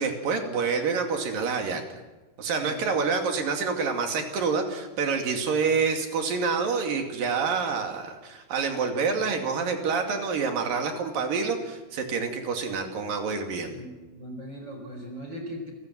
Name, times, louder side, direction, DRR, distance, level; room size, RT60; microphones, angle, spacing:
voice 1, 0.0-1.8 2.4-13.8, right 5 dB, 85° right, 4 dB, 4.3 m, -27 dB
voice 2, 2.6-3.3 13.7-15.7, equal, 30° right, 3 dB, 4.9 m, -40 dB
29.0 x 15.5 x 7.7 m, 1.2 s
omnidirectional pair, 3.9 m